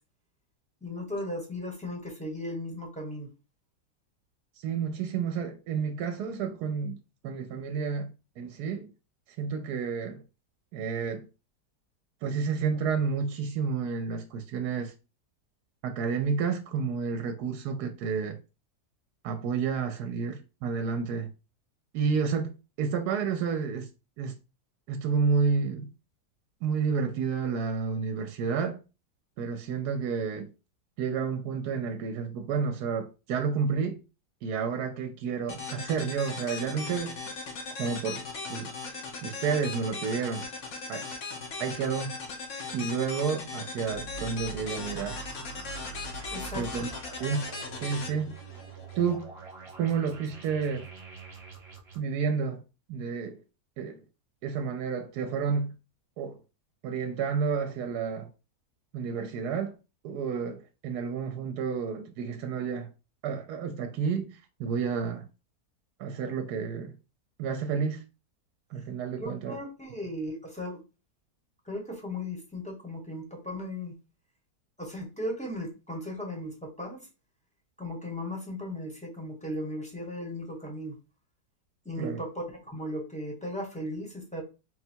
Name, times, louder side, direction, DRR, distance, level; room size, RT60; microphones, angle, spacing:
voice 1, 0.8-3.3 46.3-46.7 69.2-70.8 71.6-74.0 74.8-77.0 77.8-81.0 81.8-84.4, left 1 dB, 5° left, 1.0 m, -36 dB
voice 2, 4.6-7.0 7.2-8.1 8.4-8.9 9.4-10.2 10.7-11.3 12.2-14.9 15.8-18.4 19.2-21.3 21.9-22.5 22.8-23.9 24.2-24.3 24.9-25.9 26.6-28.8 29.4-30.5 31.0-34.0 34.4-37.2 37.8-38.2 38.5-38.7 39.2-40.4 40.9-41.1 41.6-42.2 42.7-45.2 46.5-46.9 47.2-47.5 47.8-48.4 48.9-49.3 49.8-50.9 52.0-52.6 52.9-53.4 53.8-54.0 54.4-55.7 56.2-56.4 56.8-58.3 58.9-59.7 60.0-62.9 63.2-65.3 66.0-66.9 67.4-68.0 68.7-69.6 82.0-82.2, right 5 dB, 80° right, 1.1 m, -30 dB
sound 1, 35.5-49.1, left 4 dB, 65° left, 1.3 m, -39 dB
sound 2, 43.9-52.0, right 5 dB, 45° right, 1.2 m, -44 dB
4.0 x 2.2 x 4.3 m
omnidirectional pair, 1.7 m